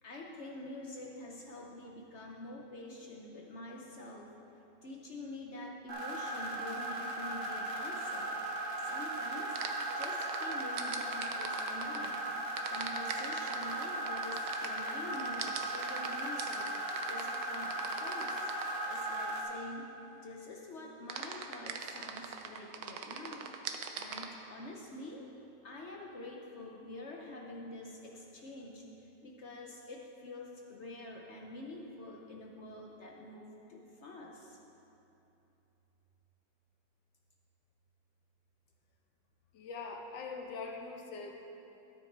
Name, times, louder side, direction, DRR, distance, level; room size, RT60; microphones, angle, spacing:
voice 1, 0.0-4.3 4.8-8.4 8.8-9.6 10.0-12.2 12.7-16.7 17.0-18.5 18.9-23.5 23.9-25.2 25.6-28.8 29.2-34.6, left 2 dB, 55° left, 0 dB, 0.8 m, -47 dB
sound 1, 5.9-19.4, right 1 dB, 45° right, 1.4 m, -37 dB
sound 2, 9.6-12.2 12.6-18.8 21.1-24.3, right 7 dB, 65° right, 1.0 m, -41 dB
voice 2, 39.5-41.3, left 4 dB, 80° left, 2 dB, 1.6 m, -42 dB
13.0 x 9.5 x 3.3 m, 2.9 s
omnidirectional pair, 2.0 m